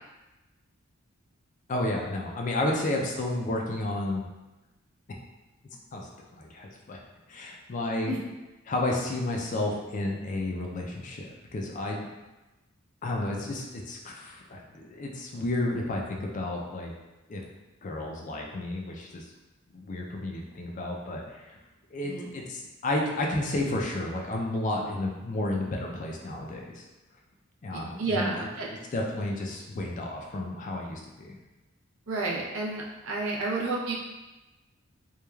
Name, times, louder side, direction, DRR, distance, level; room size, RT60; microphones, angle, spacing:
voice 1, 1.7-4.3 5.9-7.0 7.3-8.1 8.7-12.0 13.0-16.9 17.3-17.4 17.8-19.2 19.7-21.6 21.9-26.8 27.6-28.5 28.9-31.4, left 1 dB, 35° left, 0 dB, 0.3 m, -32 dB
voice 2, 27.7-28.7 32.1-33.9, right 2 dB, 65° right, -3 dB, 0.5 m, -31 dB
3.0 x 2.3 x 2.2 m, 1.1 s
head